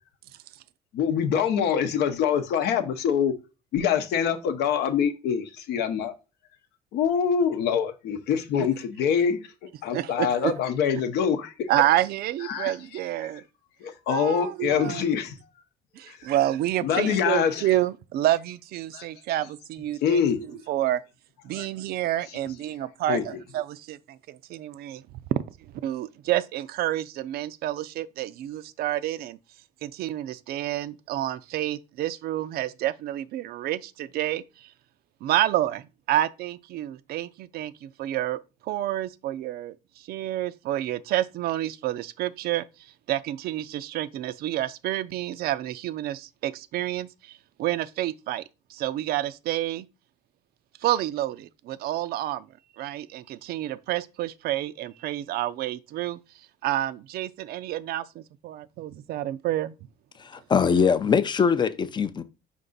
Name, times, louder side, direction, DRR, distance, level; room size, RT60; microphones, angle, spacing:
voice 1, 0.9-3.3 3.7-6.1 6.9-9.4 9.8-11.7 12.4-12.7 13.8-15.3 16.1-16.2 16.8-17.6 18.9-19.0 20.0-20.4 21.5-21.7 23.1-23.2, left 7 dB, 75° left, 0.7 m, -25 dB
voice 2, 9.9-10.5 11.7-13.4 14.1-15.1 15.9-21.0 21.4-25.0 25.8-29.4 29.8-34.7 35.2-42.7 43.1-48.4 48.7-49.9 50.8-52.5 52.8-56.2 56.6-59.7, right 14 dB, 65° right, 0.4 m, -29 dB
voice 3, 60.2-62.2, left 6 dB, 25° left, 0.4 m, -22 dB
5.3 x 2.5 x 3.9 m
cardioid pair, 110°, 17 cm